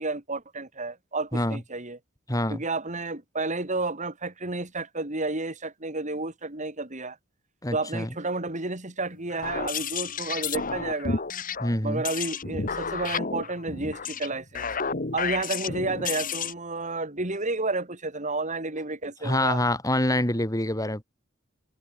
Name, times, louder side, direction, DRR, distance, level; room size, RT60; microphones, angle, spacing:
voice 1, 0.0-2.0 2.5-7.2 7.7-11.2 11.8-14.7 15.1-19.6, right 3 dB, 40° right, 3.8 m, -31 dB
voice 2, 2.3-2.6 7.6-8.1 11.6-12.0 19.2-21.0, left 1 dB, 20° left, 6.4 m, -26 dB
sound 1, 9.3-16.5, left 5 dB, 45° left, 1.7 m, -31 dB
head